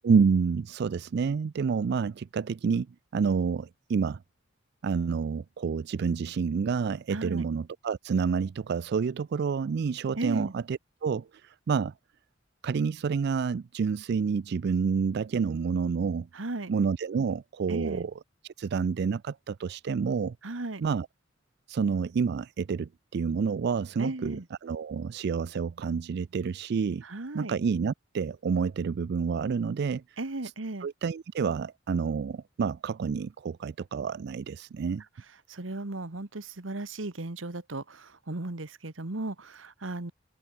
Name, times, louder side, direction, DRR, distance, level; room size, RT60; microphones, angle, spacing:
voice 1, 0.0-2.9 3.1-4.2 4.8-11.9 12.6-16.3 16.7-18.1 18.4-20.4 20.8-21.1 21.7-24.4 24.6-27.0 27.3-30.2 30.8-35.0, right 5 dB, 60° right, 0.4 m, -28 dB
voice 2, 7.1-7.5 10.2-10.5 16.3-16.7 17.7-18.1 20.4-20.8 24.0-24.4 27.0-27.5 30.2-30.9 35.5-40.1, right 2 dB, 85° right, 1.6 m, -36 dB
open air
head